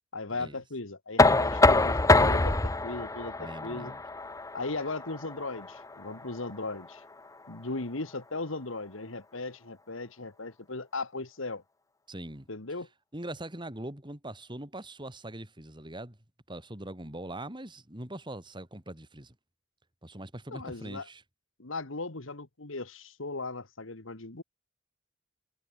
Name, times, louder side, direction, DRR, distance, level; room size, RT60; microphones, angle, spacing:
voice 1, 0.1-3.9 4.5-7.0 7.5-11.6 12.5-12.9 20.5-21.1 21.6-24.4, left 3 dB, 70° left, 1.9 m, -37 dB
Knock, 1.2-7.0, left 2 dB, 15° left, 0.8 m, -25 dB
voice 2, 3.4-4.0 12.1-12.5 13.1-16.2 16.5-19.3 20.0-21.2, right 1 dB, 25° right, 3.3 m, -42 dB
head